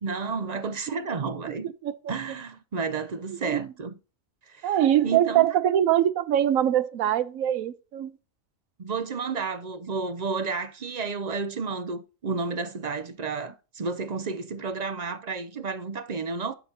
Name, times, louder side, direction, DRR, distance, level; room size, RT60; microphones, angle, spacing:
voice 1, 0.0-1.7 2.1-3.9 4.5-4.8 5.0-5.5 8.8-16.5, right 4 dB, 55° right, 0.4 m, -31 dB
voice 2, 4.6-8.2, right 11 dB, 80° right, 1.1 m, -23 dB
11.0 x 5.9 x 2.7 m
omnidirectional pair, 1.4 m